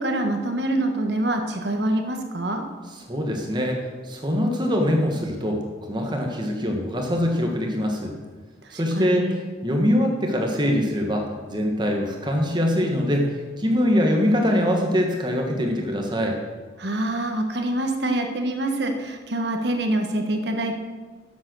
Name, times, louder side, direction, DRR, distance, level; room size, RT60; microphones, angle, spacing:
voice 1, 0.0-2.6 8.7-9.4 16.8-20.7, right 1 dB, 65° right, 4 dB, 1.4 m, -25 dB
voice 2, 3.0-8.1 8.7-16.4, equal, 25° right, 2 dB, 1.4 m, -23 dB
12.5 x 7.8 x 6.2 m, 1.4 s
head